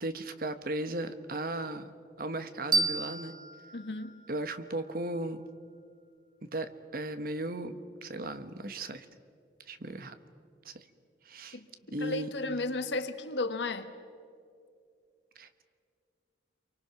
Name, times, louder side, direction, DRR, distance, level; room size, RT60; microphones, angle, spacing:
voice 1, 0.0-1.9 2.2-3.3 4.3-5.4 6.5-9.1 9.7-10.1 10.6-10.8 11.3-11.6 11.9-12.3 15.4-15.6, right 1 dB, 55° right, 1.2 m, -36 dB
sound 1, 2.7-5.5, right 3 dB, 25° right, 1.0 m, -33 dB
voice 2, 3.7-4.1 11.5-11.7 12.0-13.9, left 2 dB, 80° left, 1.3 m, -34 dB
28.5 x 24.0 x 5.8 m
head